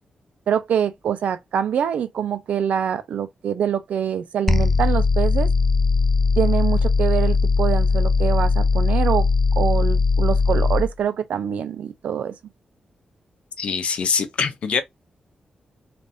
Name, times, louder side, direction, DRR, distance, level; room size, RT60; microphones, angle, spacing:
voice 1, 0.5-5.5 6.4-9.3 9.6-12.3, right 8 dB, 85° right, 0.5 m, -24 dB
sound 1, 4.5-10.9, left 4 dB, 10° left, 0.3 m, -19 dB
voice 2, 13.6-14.8, left 5 dB, 55° left, 0.6 m, -23 dB
3.3 x 2.5 x 2.6 m
wide cardioid pair, 175°, 2 cm